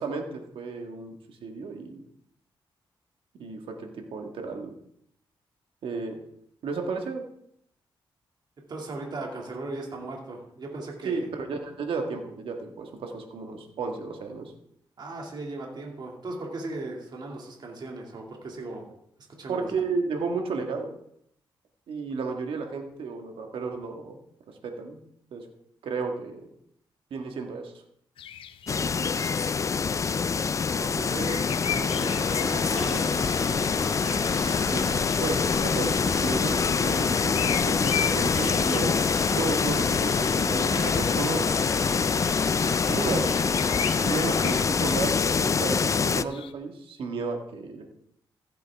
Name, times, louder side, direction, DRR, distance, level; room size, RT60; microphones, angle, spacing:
voice 1, 0.0-2.0 3.4-4.7 5.8-6.2 6.6-7.2 11.0-14.5 19.5-20.9 21.9-24.2 24.5-25.0 25.3-25.5 25.8-26.5 27.1-27.7 34.6-41.4 42.9-43.3 44.0-47.8, right 4 dB, 80° right, 3 dB, 1.7 m, -33 dB
voice 2, 8.7-11.3 15.0-18.9 19.4-19.7 30.8-33.3, right 2 dB, 55° right, 0 dB, 2.4 m, -37 dB
sound 1, 28.2-46.5, left 9 dB, 85° left, 0.6 m, -39 dB
sound 2, 28.7-46.2, left 5 dB, 35° left, 0.4 m, -25 dB
sound 3, 31.8-44.7, left 4 dB, 55° left, 2.2 m, -35 dB
15.5 x 8.1 x 3.5 m, 0.72 s
cardioid pair, 90°, 9 cm